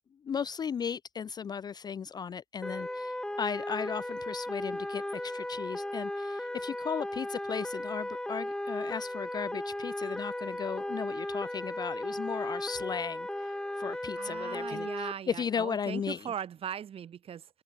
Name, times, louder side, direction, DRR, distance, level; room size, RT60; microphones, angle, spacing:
voice 1, 0.2-16.3, left 7 dB, 20° left, 0.6 m, -36 dB
sound 1, 2.6-15.1, left 1 dB, 5° left, 2.5 m, -36 dB
voice 2, 14.2-17.5, right 9 dB, 30° right, 2.1 m, -39 dB
hypercardioid pair, 100°, 19 cm